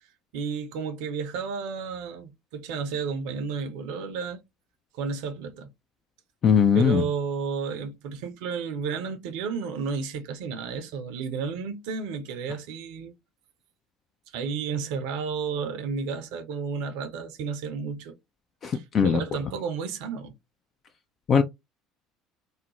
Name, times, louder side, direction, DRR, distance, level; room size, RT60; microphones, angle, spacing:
voice 1, 0.3-4.4 4.9-5.7 6.7-13.1 14.3-18.2 18.7-20.4, right 5 dB, 65° right, 0.5 m, -32 dB
voice 2, 6.4-7.0 18.6-19.2 21.3-21.4, left 7 dB, 45° left, 0.3 m, -20 dB
2.4 x 2.0 x 2.8 m
figure-of-eight pair, 65°, 0 cm